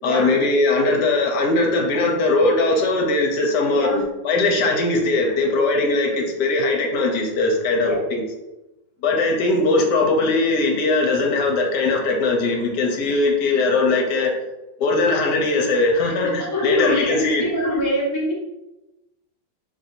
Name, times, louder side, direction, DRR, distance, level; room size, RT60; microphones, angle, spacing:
voice 1, 0.0-3.9 4.2-8.2 9.0-14.3 14.8-17.4, left 2 dB, 70° left, 1 dB, 1.2 m, -20 dB
voice 2, 3.7-4.0 7.8-8.0 16.2-18.4, equal, 25° left, -5 dB, 0.4 m, -24 dB
3.1 x 2.6 x 4.1 m, 0.98 s
omnidirectional pair, 2.1 m